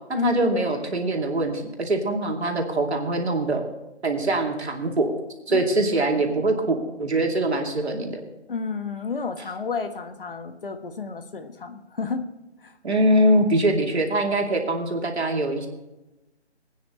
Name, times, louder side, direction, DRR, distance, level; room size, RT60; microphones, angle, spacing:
voice 1, 0.2-3.6 4.0-5.1 5.5-8.2 12.8-15.7, right 1 dB, 70° right, 1 dB, 2.7 m, -23 dB
voice 2, 8.5-12.2 12.6-12.7, left 5 dB, 50° left, 7 dB, 1.4 m, -30 dB
20.0 x 9.5 x 3.2 m, 1.0 s
figure-of-eight pair, 165°, 34 cm